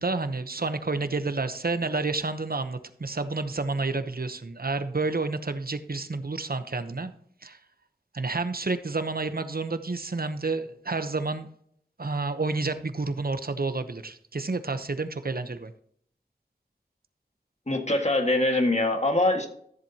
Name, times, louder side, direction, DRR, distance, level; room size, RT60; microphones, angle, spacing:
voice 1, 0.0-7.1 7.4-7.6 8.1-11.5 12.0-15.7, right 3 dB, 65° right, 10 dB, 0.9 m, -30 dB
voice 2, 17.7-19.5, left 2 dB, 45° left, 4 dB, 1.8 m, -23 dB
13.5 x 7.5 x 2.9 m, 0.65 s
wide cardioid pair, 40°, 17 cm